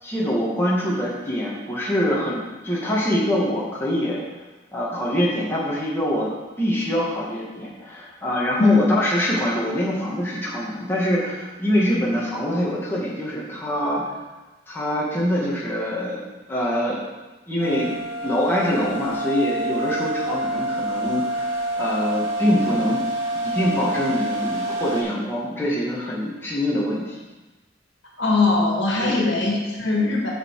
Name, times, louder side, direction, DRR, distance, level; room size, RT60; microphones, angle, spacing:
voice 1, 0.0-4.2 4.7-6.3 6.6-14.1 14.7-17.0 17.5-17.9 18.2-23.0 23.3-27.2 29.0-29.2, equal, 10° left, -6 dB, 2.0 m, -24 dB
sound 1, 17.6-25.0, right 1 dB, 65° right, 2.3 m, -27 dB
voice 2, 28.2-30.3, left 3 dB, 70° left, -2 dB, 2.1 m, -20 dB
9.3 x 6.8 x 4.8 m, 1.1 s
head